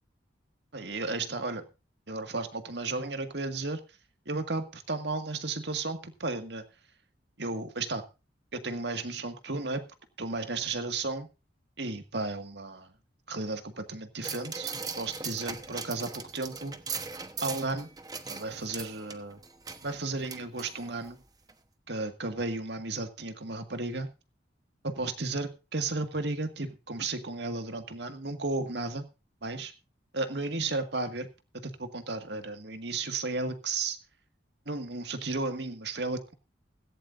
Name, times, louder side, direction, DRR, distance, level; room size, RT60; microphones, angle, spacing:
voice 1, 0.7-1.6 2.1-3.8 4.3-6.6 7.4-8.0 8.5-9.8 10.2-11.3 11.8-12.9 13.3-16.8 17.4-17.9 18.3-19.4 19.8-21.2 21.9-24.1 24.8-29.1 29.4-29.7 30.1-31.3 31.6-34.0 34.7-36.3, right 3 dB, 65° right, 1.9 m, -34 dB
sound 1, 14.2-21.1 21.5-21.6, right 5 dB, 20° right, 1.0 m, -39 dB
16.5 x 15.5 x 2.6 m
head